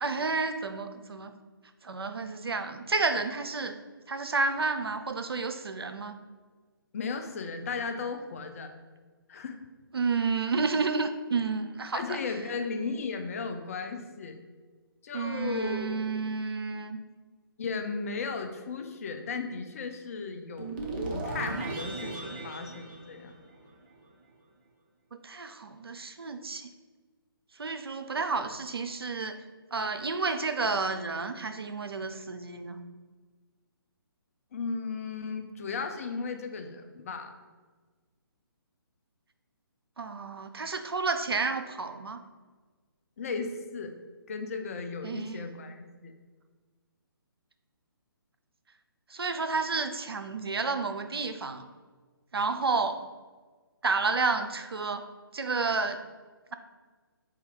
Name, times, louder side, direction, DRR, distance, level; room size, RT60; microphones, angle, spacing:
voice 1, 0.0-1.3 1.8-3.7 4.1-6.2 9.9-12.2 15.1-17.0 25.2-26.6 27.6-29.4 29.7-32.8 40.0-42.2 45.0-45.4 49.1-51.7 52.3-53.0 53.8-55.0 55.3-56.0, right 4 dB, 80° right, 8 dB, 0.4 m, -30 dB
voice 2, 6.9-8.7 9.3-9.6 11.9-14.4 15.0-16.3 17.6-20.8 21.1-23.3 34.5-37.3 43.2-43.9 44.3-46.1, left 4 dB, 35° left, 7 dB, 0.4 m, -35 dB
sound 1, 20.6-23.8, right 2 dB, 25° right, 0.5 m, -36 dB
4.2 x 2.3 x 4.4 m, 1.4 s
figure-of-eight pair, 140°, 13 cm